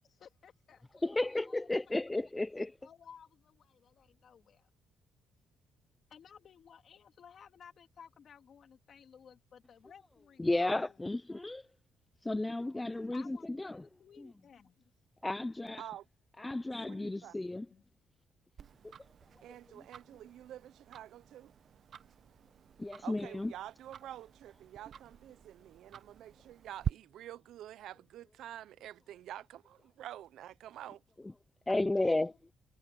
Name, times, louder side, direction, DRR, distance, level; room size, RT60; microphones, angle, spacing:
voice 1, 0.1-2.3 2.6-4.7 6.1-11.1 13.1-14.9 17.7-17.8 31.7-32.4, left 7 dB, 55° left, 2.8 m, -57 dB
voice 2, 1.0-2.7 10.4-11.6 12.2-13.8 15.2-15.8 16.4-17.7 18.8-18.9 22.8-23.5 31.7-32.3, left 2 dB, 15° left, 0.6 m, -33 dB
voice 3, 16.9-17.3 19.4-21.5 23.0-31.0, right 12 dB, 80° right, 0.6 m, -48 dB
Tick-tock, 18.6-26.9, right 9 dB, 60° right, 1.1 m, -46 dB
cardioid pair, 90°, 0 cm